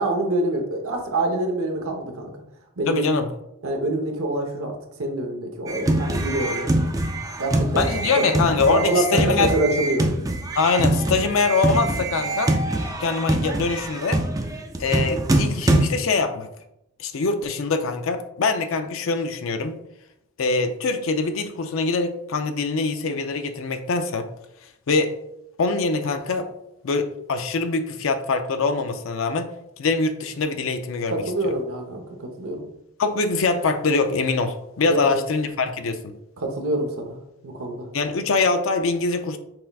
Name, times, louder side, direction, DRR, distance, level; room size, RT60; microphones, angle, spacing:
voice 1, 0.0-2.3 2.8-3.1 3.6-6.8 7.4-7.9 8.7-10.1 31.1-32.7 34.9-35.2 36.4-37.2 37.4-37.9, right 2 dB, 75° right, 2 dB, 0.9 m, -25 dB
voice 2, 2.9-3.3 7.7-9.5 10.6-12.5 13.0-14.2 14.8-16.5 17.0-19.8 20.4-24.3 24.9-25.1 25.6-26.5 26.8-31.5 33.0-36.2 37.9-39.4, left 4 dB, 65° left, 8 dB, 0.5 m, -23 dB
sound 1, 5.7-15.8, right 1 dB, 15° right, 0.3 m, -24 dB
5.9 x 3.5 x 2.3 m, 0.83 s
head